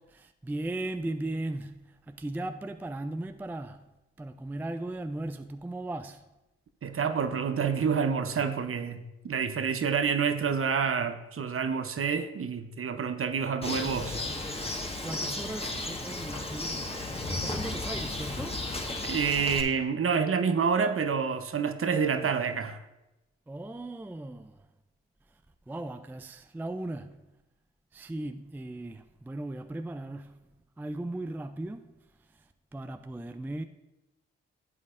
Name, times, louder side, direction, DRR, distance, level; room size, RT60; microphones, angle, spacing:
voice 1, 0.1-3.8 4.2-6.2 14.4-14.7 15.0-16.9 17.3-18.6 23.5-24.7 25.7-27.2 27.9-30.4 30.8-31.9 32.7-33.6, right 2 dB, 5° right, 0.4 m, -37 dB
voice 2, 6.8-9.0 9.2-14.2 19.0-22.8, right 6 dB, 45° right, 0.8 m, -28 dB
Bird, 13.6-19.6, left 2 dB, 20° left, 1.4 m, -34 dB
12.0 x 8.2 x 2.5 m
hypercardioid pair, 45°, 32 cm